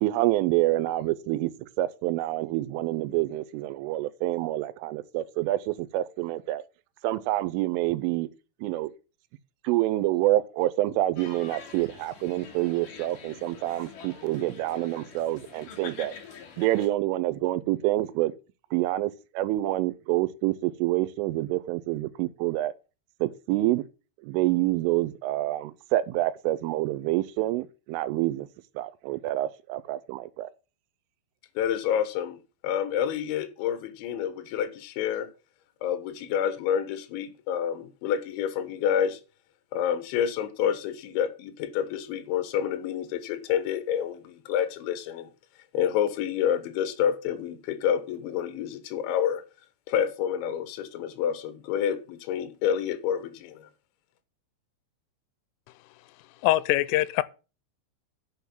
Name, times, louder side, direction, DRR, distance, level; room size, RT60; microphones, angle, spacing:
voice 1, 0.0-1.5 1.8-6.6 7.0-8.3 8.6-8.9 9.6-16.1 16.6-18.3 18.7-22.7 23.2-23.8 24.2-28.5 28.8-30.5, right 16 dB, 85° right, 3.2 m, -27 dB
sound 1, 11.2-16.9, left 6 dB, 50° left, 3.2 m, -46 dB
voice 2, 31.6-35.3 35.8-39.2 39.7-45.3 45.7-49.4 49.9-53.7, left 9 dB, 75° left, 3.4 m, -28 dB
voice 3, 56.4-57.2, left 16 dB, 90° left, 3.2 m, -23 dB
9.4 x 6.2 x 7.1 m
omnidirectional pair, 5.6 m